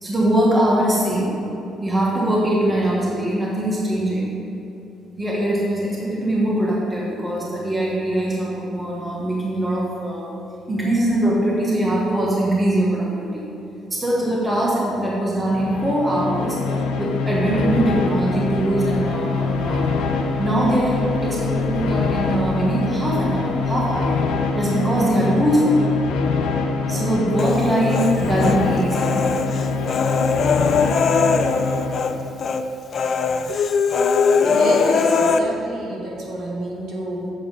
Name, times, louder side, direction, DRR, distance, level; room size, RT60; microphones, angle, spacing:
voice 1, 0.0-1.4 1.8-4.3 5.2-10.3 10.7-13.4 13.9-19.9 20.2-24.2 24.5-25.9 26.9-29.4, right 1 dB, 15° right, -4 dB, 1.2 m, -22 dB
sound 1, 15.5-32.3, left 4 dB, 90° left, 0.7 m, -24 dB
sound 2, 17.8-24.6, left 1 dB, 10° left, 1.1 m, -40 dB
Human voice, 27.4-28.6 28.9-32.1 32.4-32.6 32.9-35.4, left 5 dB, 35° left, 0.4 m, -20 dB
voice 2, 34.4-37.3, equal, 65° right, -3 dB, 1.9 m, -28 dB
7.7 x 7.2 x 5.2 m, 3.0 s
cardioid pair, 175°, 0 cm